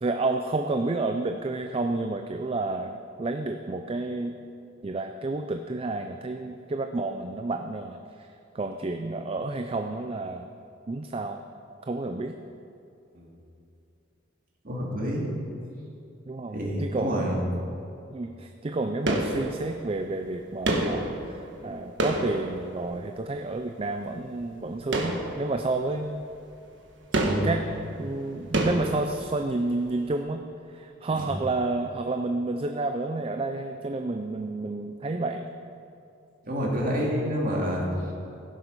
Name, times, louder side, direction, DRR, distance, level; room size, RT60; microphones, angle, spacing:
voice 1, 0.0-4.4 4.8-8.3 8.5-10.5 10.9-11.4 11.9-12.3 16.3-17.7 18.1-26.3 27.4-27.6 28.0-30.4 30.7-35.5, right 2 dB, 30° right, 5 dB, 0.4 m, -30 dB
voice 2, 14.6-15.3 16.5-17.4 27.2-27.5 31.1-31.3 36.5-37.9, equal, 45° right, -2 dB, 2.3 m, -28 dB
sound 1, 19.1-20.0 20.6-23.2 24.9-25.9 26.2-26.3 27.1-29.7 30.0-30.1, right 1 dB, 65° right, 1.4 m, -29 dB
16.5 x 7.5 x 5.4 m, 2.7 s
head